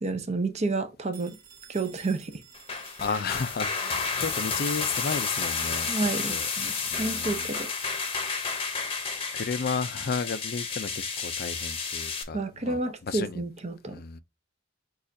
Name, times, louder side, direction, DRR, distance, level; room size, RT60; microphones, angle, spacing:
voice 1, 0.0-1.4 1.7-2.3 5.9-7.7 12.3-14.0, right 3 dB, 30° right, 0.7 m, -30 dB
Telephone, 1.1-4.1, right 7 dB, 50° right, 1.8 m, -52 dB
sound 1, 2.5-12.2, left 5 dB, 30° left, 0.8 m, -31 dB
voice 2, 3.0-5.9 6.3-6.5 6.9-7.5 8.1-8.4 9.3-12.8 13.1-13.4 13.9-14.2, left 5 dB, 50° left, 0.5 m, -33 dB
6.4 x 2.4 x 2.7 m
head